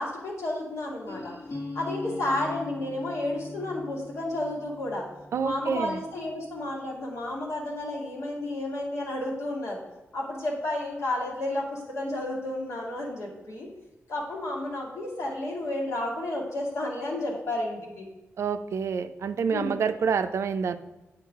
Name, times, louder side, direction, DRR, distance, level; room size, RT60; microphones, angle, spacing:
voice 1, 0.0-1.3 1.7-5.0 5.4-9.8 10.1-13.7 14.1-18.1 19.5-19.8, left 1 dB, 85° left, -3 dB, 1.9 m, -31 dB
sound 1, 1.1-6.8, left 3 dB, 65° left, 1.3 m, -41 dB
voice 2, 5.3-6.0 18.4-20.8, right 6 dB, 70° right, 10 dB, 0.4 m, -27 dB
8.6 x 4.6 x 3.6 m, 1.1 s
cardioid pair, 75°, 5 cm